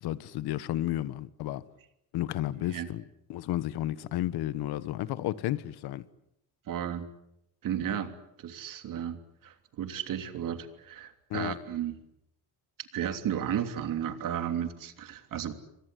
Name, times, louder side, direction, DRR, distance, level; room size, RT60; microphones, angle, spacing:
voice 1, 0.0-1.6 2.1-3.0 3.3-6.0 11.3-11.6, left 14 dB, 75° left, 1.4 m, -32 dB
voice 2, 2.6-2.9 6.7-7.1 7.6-12.0 12.9-15.5, right 9 dB, 55° right, 3.2 m, -34 dB
29.0 x 25.0 x 8.3 m
cardioid pair, 155°, 38 cm